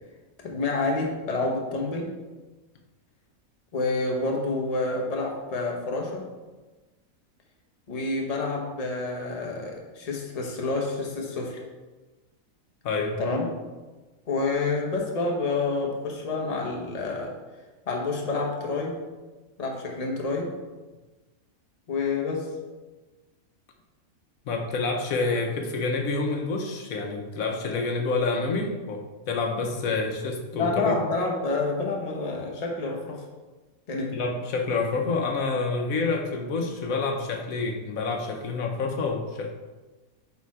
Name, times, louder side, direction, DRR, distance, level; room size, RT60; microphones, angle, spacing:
voice 1, 0.4-2.1 3.7-6.3 7.9-11.6 13.2-13.5 14.3-17.4 17.9-19.0 19.6-20.5 21.9-22.5 30.5-33.2 33.9-34.2, left 3 dB, 30° left, 0 dB, 1.0 m, -28 dB
voice 2, 12.8-13.2 24.5-30.9 34.1-39.5, left 3 dB, 75° left, 3 dB, 1.2 m, -28 dB
6.9 x 4.2 x 4.7 m, 1.2 s
omnidirectional pair, 1.5 m